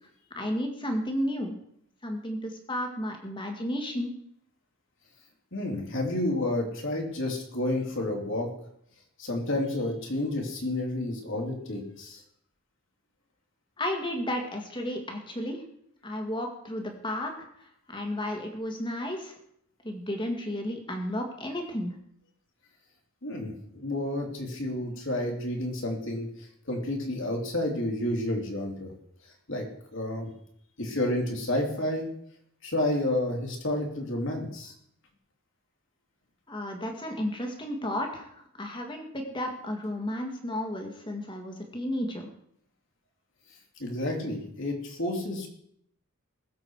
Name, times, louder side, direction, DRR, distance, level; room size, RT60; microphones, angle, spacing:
voice 1, 0.3-1.6 2.0-4.1 13.8-15.6 16.0-17.5 17.9-19.4 19.8-21.9 36.5-42.3, left 1 dB, 20° left, 3 dB, 2.1 m, -33 dB
voice 2, 5.5-8.5 9.2-12.2 23.2-26.3 26.7-28.9 29.5-29.7 29.9-30.3 30.8-32.1 32.6-34.7 43.8-45.5, left 1 dB, 55° left, 1 dB, 3.1 m, -30 dB
21.0 x 7.7 x 4.8 m, 0.69 s
head